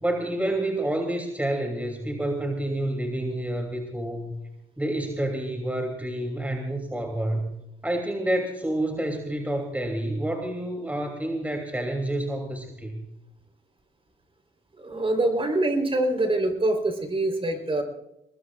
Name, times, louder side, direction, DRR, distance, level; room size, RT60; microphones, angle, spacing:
voice 1, 0.0-4.3 4.8-7.5 7.8-13.1, right 1 dB, 5° right, 3 dB, 2.7 m, -28 dB
voice 2, 14.8-17.8, right 2 dB, 25° right, 5 dB, 3.8 m, -24 dB
22.5 x 20.0 x 2.4 m, 0.87 s
cardioid pair, 90°, 20 cm